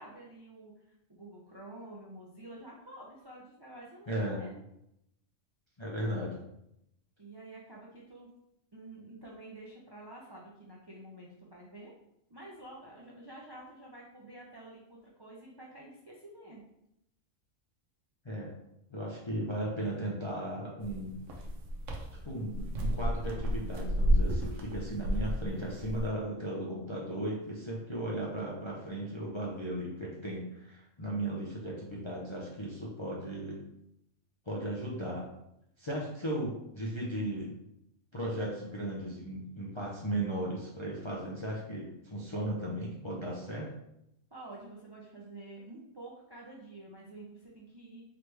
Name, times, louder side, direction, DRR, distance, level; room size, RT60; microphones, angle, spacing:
voice 1, 0.0-4.6 7.2-8.3 8.7-11.9 12.3-16.6 44.3-48.0, right 2 dB, 40° right, -3 dB, 0.3 m, -49 dB
voice 2, 4.1-4.4 5.8-6.4 18.2-18.5 18.9-21.2 22.2-33.6 34.5-35.2 35.8-37.5 38.1-43.7, right 1 dB, 35° left, -4 dB, 0.5 m, -36 dB
sound 1, 20.8-26.1, equal, 70° right, 1.1 m, -31 dB
4.0 x 3.1 x 3.3 m, 0.81 s
omnidirectional pair, 1.4 m